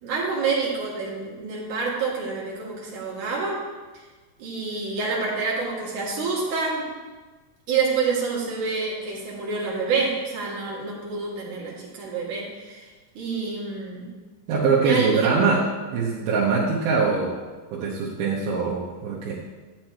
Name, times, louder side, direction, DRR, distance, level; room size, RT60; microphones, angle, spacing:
voice 1, 0.0-3.6 4.4-6.8 7.7-12.9 13.1-14.1 14.8-15.4, right 4 dB, 55° right, -5 dB, 3.4 m, -27 dB
voice 2, 14.5-17.4 17.7-19.4, right 4 dB, 85° right, -6 dB, 2.9 m, -23 dB
12.0 x 8.9 x 3.1 m, 1.3 s
omnidirectional pair, 4.4 m